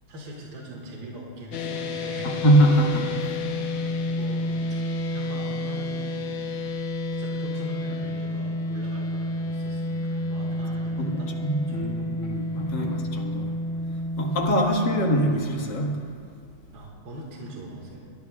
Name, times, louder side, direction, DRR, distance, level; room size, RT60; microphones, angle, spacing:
voice 1, 0.1-2.4 3.5-3.7 4.1-4.8 5.1-6.2 7.1-11.3 11.7-12.1 12.8-13.0 16.7-18.0, right 1 dB, 60° right, -2 dB, 2.5 m, -41 dB
sound 1, 1.5-15.3, left 1 dB, 75° left, 1.6 m, -30 dB
voice 2, 2.2-3.1 11.0-11.1 11.4-13.5 14.2-16.0, right 1 dB, 55° left, 1 dB, 2.2 m, -23 dB
23.5 x 19.0 x 2.4 m, 2.3 s
omnidirectional pair, 2.4 m